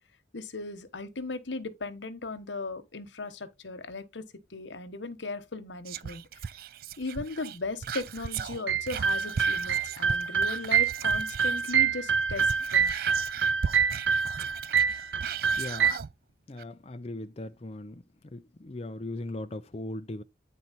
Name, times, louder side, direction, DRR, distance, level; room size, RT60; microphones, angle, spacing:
voice 1, 0.3-6.4 7.0-12.9, left 3 dB, 85° left, 1.3 m, -37 dB
Whispering, 5.9-11.9 12.2-16.1 16.6-16.7, right 7 dB, 50° right, 0.4 m, -37 dB
sound 1, 8.7-15.9, right 6 dB, 80° right, 0.9 m, -26 dB
voice 2, 15.6-16.0 16.5-18.0 18.3-20.2, left 1 dB, 35° left, 0.6 m, -38 dB
9.5 x 4.4 x 4.1 m
head